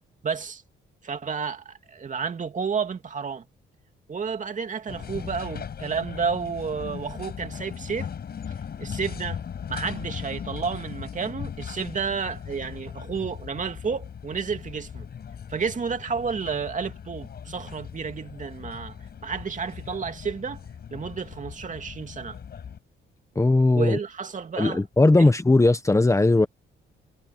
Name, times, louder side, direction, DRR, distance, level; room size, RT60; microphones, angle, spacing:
voice 1, 0.2-0.6 1.0-3.4 4.1-8.1 8.8-9.4 9.7-15.1 15.5-19.0 19.2-20.6 20.9-22.4 23.7-24.8 25.2-25.3, right 6 dB, 40° right, 2.6 m, -31 dB
sound 1, 4.9-22.8, left 7 dB, 55° left, 5.9 m, -38 dB
voice 2, 23.3-24.0 24.6-26.5, left 2 dB, 15° left, 1.4 m, -18 dB
cardioid pair, 90°, 20 cm